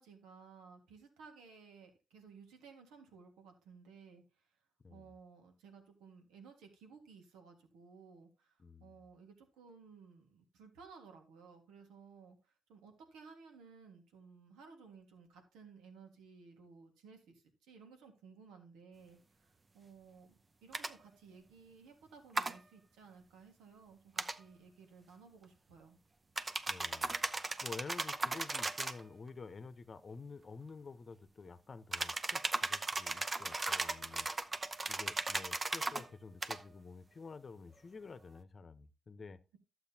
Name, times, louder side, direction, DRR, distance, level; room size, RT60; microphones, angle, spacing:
voice 1, 0.0-4.2 4.9-26.0, right 5 dB, 85° right, 1.7 m, -57 dB
voice 2, 8.6-8.9 26.7-34.3 34.9-39.4, left 4 dB, 45° left, 0.9 m, -50 dB
sound 1, 20.7-20.9 22.3-22.5 24.2-24.4 26.4-29.0 31.9-36.0 36.4-36.6, right 3 dB, 35° right, 0.8 m, -37 dB
12.0 x 7.9 x 2.8 m
supercardioid pair, 50°, 0 cm